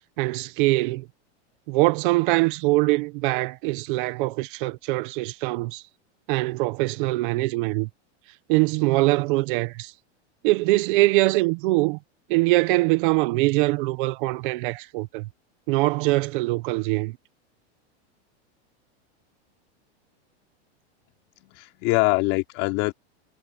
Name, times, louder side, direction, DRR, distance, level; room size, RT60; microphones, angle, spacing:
voice 1, 0.2-1.1 1.7-5.8 6.3-7.9 8.5-9.9 10.4-12.0 12.3-15.3 15.7-17.2, right 21 dB, 45° right, 1.2 m, -23 dB
voice 2, 21.4-22.9, left 23 dB, 40° left, 3.1 m, -23 dB
supercardioid pair, 160°, 35 cm